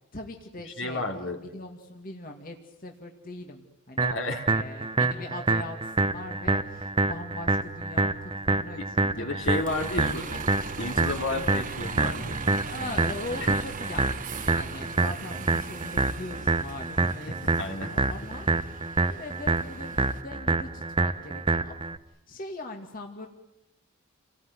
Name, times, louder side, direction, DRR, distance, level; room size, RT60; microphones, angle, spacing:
voice 1, 0.1-4.2 4.5-10.6 12.7-21.8 22.1-23.3, left 2 dB, 45° left, 2 dB, 2.3 m, -41 dB
voice 2, 0.8-1.4 4.0-4.5 5.0-5.1 8.8-10.2 10.8-12.4 17.6-18.1, left 2 dB, 65° left, 4 dB, 3.2 m, -32 dB
sound 1, 4.0-22.0, right 3 dB, 25° right, 0.9 m, -27 dB
Bus, 9.4-20.2, right 4 dB, 40° right, 1.3 m, -40 dB
30.0 x 19.0 x 9.7 m, 0.91 s
head